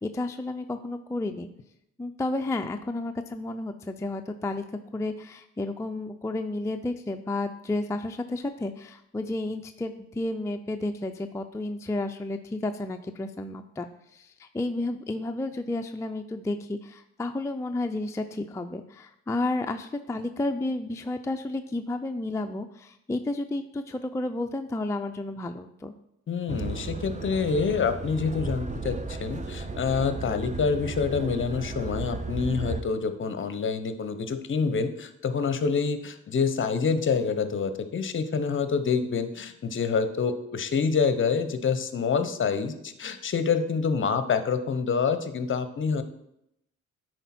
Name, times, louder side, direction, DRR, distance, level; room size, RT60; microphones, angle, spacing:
voice 1, 0.0-1.5 2.0-4.6 4.9-25.9, left 2 dB, 10° left, 5 dB, 0.4 m, -32 dB
voice 2, 26.3-46.0, left 5 dB, 40° left, 10 dB, 0.8 m, -27 dB
sound 1, 26.5-32.8, right 3 dB, 25° right, 0.7 m, -34 dB
10.0 x 4.5 x 4.3 m, 0.78 s
cardioid pair, 90°, 30 cm